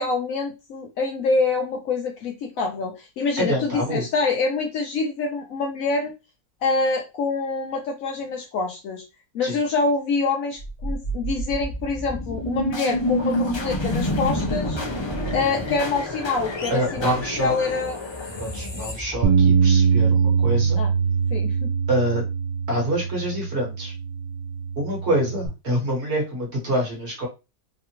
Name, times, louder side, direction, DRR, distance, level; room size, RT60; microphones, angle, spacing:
voice 1, 0.0-6.1 6.6-9.0 9.3-14.8 15.3-18.0 20.8-20.9 21.3-21.7, left 4 dB, 70° left, 2 dB, 1.0 m, -26 dB
voice 2, 3.4-4.0 9.4-9.6 16.7-17.6 18.4-20.8 21.9-22.2 22.7-23.9 24.8-27.3, right 1 dB, 50° right, -2 dB, 1.5 m, -26 dB
sound 1, 10.6-19.7, equal, 40° left, 0.3 m, -28 dB
Bass guitar, 19.2-25.5, right 6 dB, 80° right, 1.1 m, -22 dB
3.3 x 2.4 x 2.8 m, 0.27 s
omnidirectional pair, 1.6 m